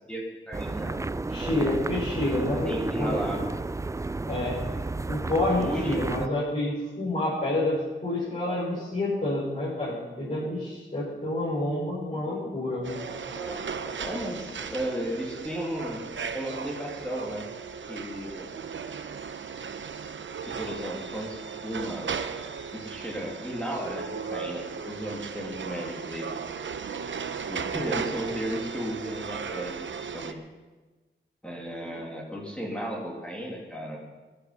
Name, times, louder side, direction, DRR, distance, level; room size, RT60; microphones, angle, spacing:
voice 1, 0.1-1.0 1.6-1.7 2.6-3.5 5.6-6.0 8.3-9.3 10.2-10.6 12.1-17.5 17.9-18.5 20.5-22.1 22.7-26.3 27.5-29.8 30.1-30.4 31.4-34.0, equal, 5° left, -2 dB, 2.7 m, -35 dB
sound 1, 0.5-6.3, right 3 dB, 15° right, 0.4 m, -32 dB
voice 2, 1.3-3.4 4.3-4.6 5.1-13.0, left 1 dB, 40° left, -8 dB, 5.8 m, -29 dB
sound 2, 12.8-30.3, right 6 dB, 70° right, 0.9 m, -36 dB
18.0 x 11.0 x 5.6 m, 1.3 s
wide cardioid pair, 80°, 20 cm